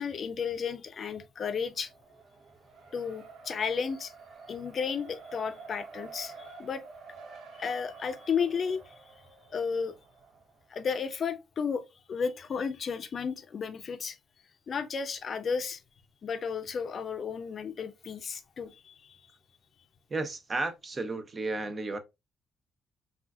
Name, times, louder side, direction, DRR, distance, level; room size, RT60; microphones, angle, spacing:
voice 1, 0.0-1.9 2.9-4.1 4.5-6.3 6.6-6.8 7.6-8.8 9.5-9.9 10.7-11.8 12.1-14.2 14.7-15.8 16.2-18.9, left 6 dB, 50° left, 0.5 m, -33 dB
Race car auto racing, 1.6-10.7, right 4 dB, 70° right, 0.8 m, -49 dB
voice 2, 20.1-22.0, right 3 dB, 35° right, 0.6 m, -33 dB
3.6 x 2.4 x 2.4 m
cardioid pair, 90°, 0 cm